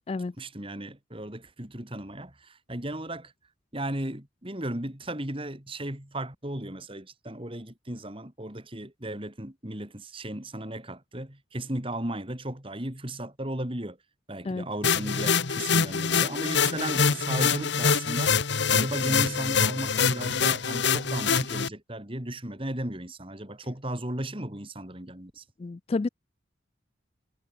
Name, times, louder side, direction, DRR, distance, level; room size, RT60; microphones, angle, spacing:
voice 1, 0.4-3.3 3.7-14.0 14.3-25.4, right 1 dB, 25° right, 3.0 m, -35 dB
sound 1, 14.8-21.7, left 6 dB, 60° left, 1.3 m, -25 dB
voice 2, 25.6-26.1, left 3 dB, 30° left, 0.3 m, -30 dB
head